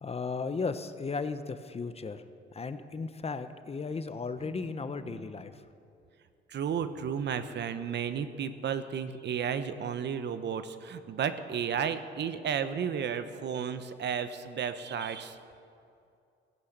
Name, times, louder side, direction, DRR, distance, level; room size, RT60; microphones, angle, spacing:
voice 1, 0.0-2.2 2.5-5.6, left 4 dB, 30° left, 10 dB, 0.9 m, -35 dB
voice 2, 6.5-15.4, right 7 dB, 60° right, 11 dB, 1.0 m, -33 dB
15.5 x 11.5 x 8.1 m, 2.4 s
cardioid pair, 90°, 20 cm